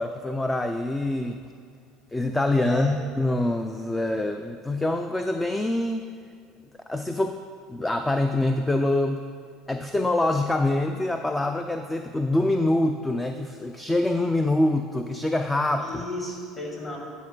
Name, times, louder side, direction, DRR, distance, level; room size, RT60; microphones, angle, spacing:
voice 1, 0.0-1.4 2.1-6.1 6.9-7.4 7.7-9.2 9.7-16.1, left 1 dB, 10° left, 6 dB, 0.3 m, -25 dB
voice 2, 2.6-3.0 15.7-17.0, left 1 dB, 25° left, -2 dB, 2.2 m, -34 dB
9.8 x 4.4 x 6.1 m, 2.2 s
cardioid pair, 130°, 0 cm